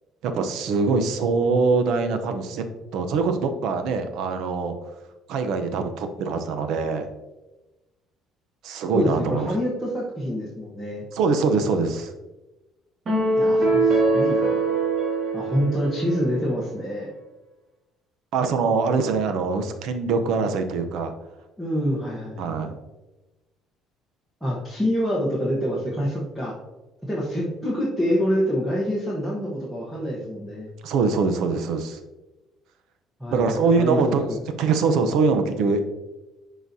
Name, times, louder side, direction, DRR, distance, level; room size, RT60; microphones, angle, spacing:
voice 1, 0.2-2.6 2.9-4.7 5.3-7.1 8.6-9.5 11.1-12.1 18.3-21.1 22.4-22.8 30.8-32.0 33.3-34.3 34.6-35.8, right 4 dB, 60° right, 7 dB, 0.6 m, -23 dB
voice 2, 8.9-11.0 13.3-14.6 15.3-17.1 21.6-22.7 24.4-26.5 27.0-30.7 33.2-34.4, equal, 5° right, -6 dB, 0.9 m, -26 dB
sound 1, 13.0-16.5, right 2 dB, 30° right, 1.5 m, -22 dB
10.5 x 4.0 x 2.7 m, 1.1 s
cardioid pair, 175°, 0 cm